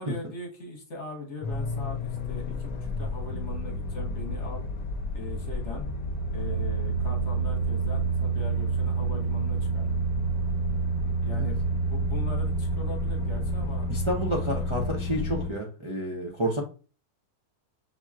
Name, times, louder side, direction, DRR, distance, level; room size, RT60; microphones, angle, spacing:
voice 1, 0.0-4.6 5.1-5.8 6.3-9.9 11.2-13.9, left 2 dB, 50° left, 0 dB, 1.3 m, -40 dB
sound 1, 1.4-15.5, right 2 dB, 70° left, 1.1 m, -29 dB
voice 2, 13.9-16.6, equal, 30° right, -2 dB, 0.6 m, -30 dB
5.9 x 2.9 x 2.4 m, 0.35 s
omnidirectional pair, 1.6 m